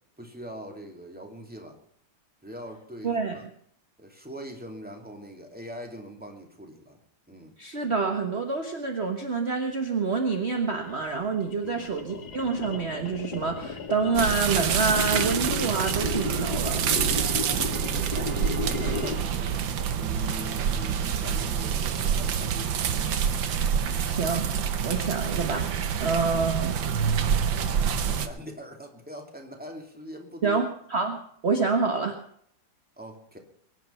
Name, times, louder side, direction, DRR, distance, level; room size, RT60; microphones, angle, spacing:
voice 1, 0.2-1.8 2.4-3.4 4.0-7.0 7.3-7.5 11.6-11.8 18.1-19.6 20.0-22.6 28.0-30.6 33.0-33.4, equal, 5° right, 3 dB, 2.5 m, -42 dB
voice 2, 3.0-3.5 7.6-16.9 24.0-26.8 30.4-32.2, right 4 dB, 35° right, 4 dB, 1.5 m, -27 dB
sound 1, 10.7-19.4, left 4 dB, 60° left, 2.0 m, -35 dB
sound 2, 14.1-28.3, right 7 dB, 90° right, 1.8 m, -27 dB
23.0 x 10.5 x 5.7 m, 0.65 s
omnidirectional pair, 2.0 m